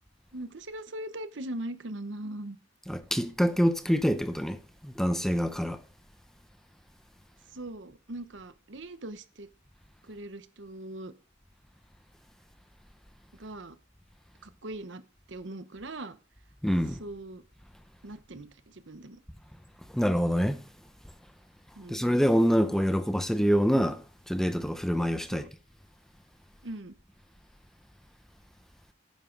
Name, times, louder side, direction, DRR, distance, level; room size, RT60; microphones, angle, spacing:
voice 1, 0.3-2.6 7.5-9.5 10.0-11.1 13.4-13.8 14.4-15.0 15.3-16.2 17.0-17.4 18.0-19.2 21.8-22.0 25.3-25.5 26.6-27.0, right 1 dB, 70° right, 1.0 m, -40 dB
voice 2, 2.9-5.8 16.6-17.0 19.9-20.6 21.9-25.5, equal, ahead, 0.7 m, -26 dB
11.0 x 9.6 x 3.9 m
head